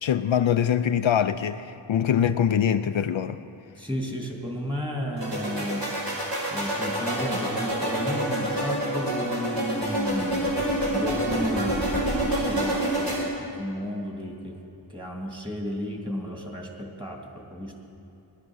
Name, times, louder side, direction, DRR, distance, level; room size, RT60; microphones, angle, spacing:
voice 1, 0.0-3.4, left 9 dB, 75° left, 10 dB, 0.6 m, -23 dB
voice 2, 3.8-5.8 6.5-10.6 10.9-14.6 14.9-17.7, equal, 10° right, 1 dB, 2.6 m, -33 dB
sound 1, 5.2-13.2, right 1 dB, 60° right, 4.8 m, -27 dB
18.5 x 11.0 x 6.3 m, 2.7 s
wide cardioid pair, 55°, 47 cm